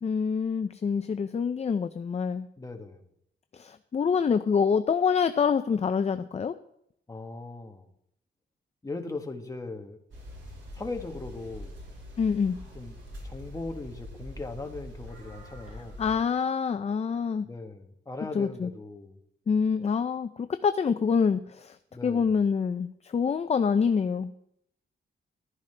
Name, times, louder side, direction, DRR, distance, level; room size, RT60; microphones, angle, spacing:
voice 1, 0.0-2.5 3.5-6.5 12.2-12.6 16.0-17.5 18.3-18.7 19.5-21.8 22.0-24.3, left 6 dB, 35° left, 10 dB, 0.4 m, -26 dB
voice 2, 2.6-3.1 7.1-7.9 8.8-10.0 10.7-11.8 12.7-12.9 13.2-16.0 17.4-19.2 21.9-22.3, left 3 dB, 15° left, 4 dB, 1.3 m, -39 dB
sound 1, 10.1-16.2, left 1 dB, 90° right, 5.5 m, -44 dB
14.5 x 12.0 x 3.3 m, 0.73 s
wide cardioid pair, 135°, 19 cm